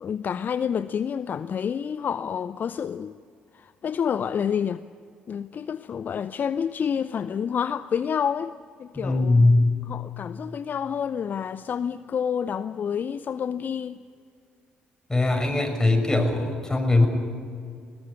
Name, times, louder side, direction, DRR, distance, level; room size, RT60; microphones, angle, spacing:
voice 1, 0.0-3.1 3.5-4.8 5.3-8.5 8.8-9.5 9.9-14.0, left 7 dB, 45° left, 0.6 m, -28 dB
voice 2, 8.9-9.7 15.1-17.1, left 2 dB, 15° left, 6.6 m, -20 dB
21.0 x 20.0 x 9.9 m
figure-of-eight pair, 45°, 4 cm